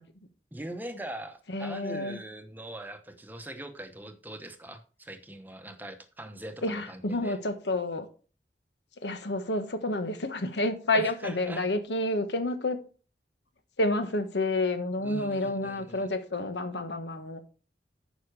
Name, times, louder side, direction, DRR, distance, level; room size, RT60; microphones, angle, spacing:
voice 1, 0.5-7.4 10.9-11.7 15.0-16.1, right 1 dB, 10° right, 0.9 m, -42 dB
voice 2, 1.5-2.2 6.6-8.1 9.0-12.8 13.8-17.4, left 2 dB, 80° left, 1.3 m, -29 dB
9.4 x 5.8 x 4.7 m
head